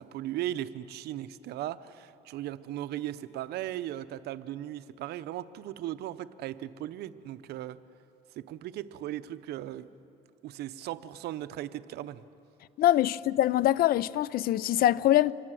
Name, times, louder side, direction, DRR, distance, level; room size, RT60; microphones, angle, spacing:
voice 1, 0.0-7.8 8.3-9.9 10.4-12.2, right 13 dB, 75° right, 0.8 m, -37 dB
voice 2, 12.8-15.3, left 13 dB, 60° left, 0.5 m, -24 dB
25.5 x 21.0 x 7.6 m
cardioid pair, 110°, 17 cm